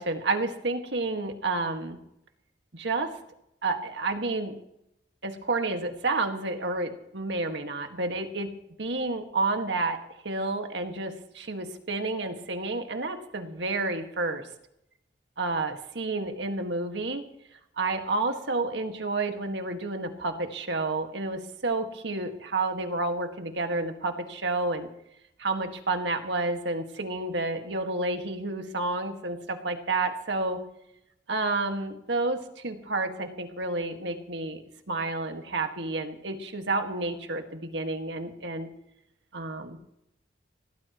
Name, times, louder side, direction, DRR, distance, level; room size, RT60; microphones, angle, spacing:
voice 1, 0.0-2.0 2.7-3.1 3.6-4.5 5.2-8.5 8.8-10.0 10.2-14.4 15.4-17.2 17.8-24.9 25.4-30.6 31.3-34.6 34.9-38.7 39.3-39.8, right 3 dB, 70° right, 5 dB, 1.8 m, -30 dB
22.0 x 17.5 x 3.1 m, 0.80 s
head